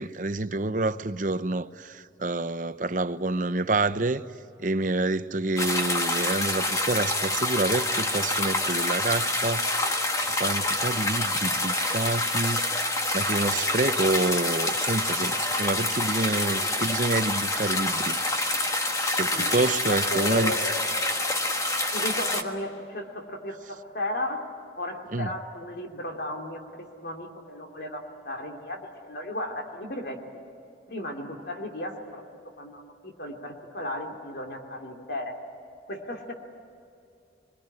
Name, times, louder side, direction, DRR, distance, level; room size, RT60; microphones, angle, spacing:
voice 1, 0.0-4.2 4.6-9.7 10.4-12.7 13.1-18.2 19.2-20.5 25.1-25.3, right 2 dB, 45° right, 0.8 m, -27 dB
sound 1, 5.6-22.4, left 2 dB, 20° left, 1.5 m, -27 dB
voice 2, 19.9-20.7 21.9-24.4 24.8-30.2 30.9-32.2 32.6-35.4 35.9-36.3, left 1 dB, 65° left, 2.8 m, -35 dB
25.0 x 22.0 x 9.9 m
head